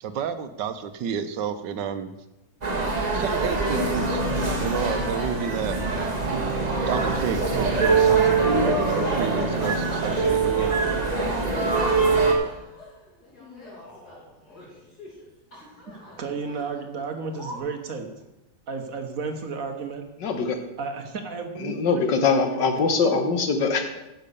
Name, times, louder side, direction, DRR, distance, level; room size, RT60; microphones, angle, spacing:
voice 1, 0.0-2.1 3.1-4.2 4.6-5.8 6.9-10.9, right 7 dB, 75° right, 10 dB, 1.4 m, -30 dB
audience-orchestra-warmup, 2.6-12.3, right 4 dB, 25° right, 1.6 m, -23 dB
sound 1, 6.2-6.7 7.2-15.2 15.5-16.2 16.4-16.7 17.0-17.1 17.3-17.6, left 3 dB, 55° left, 4.0 m, -38 dB
voice 2, 15.9-18.1 18.7-20.1 20.8-22.1 23.2-23.3, right 4 dB, 50° right, 6 dB, 1.4 m, -33 dB
voice 3, 20.2-20.6 21.6-24.0, left 4 dB, 75° left, 6 dB, 1.8 m, -23 dB
10.0 x 6.7 x 6.7 m, 0.95 s
omnidirectional pair, 2.0 m